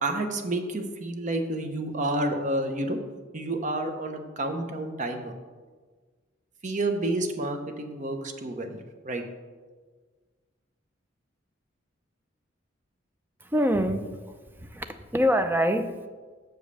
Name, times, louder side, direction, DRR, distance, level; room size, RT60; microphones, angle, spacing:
voice 1, 0.0-3.0 3.3-5.3 6.6-8.8 9.0-9.2, right 2 dB, 40° right, 5 dB, 0.8 m, -29 dB
voice 2, 13.4-14.2 14.6-16.1, equal, 10° right, 8 dB, 0.4 m, -25 dB
6.3 x 5.1 x 6.7 m, 1.4 s
head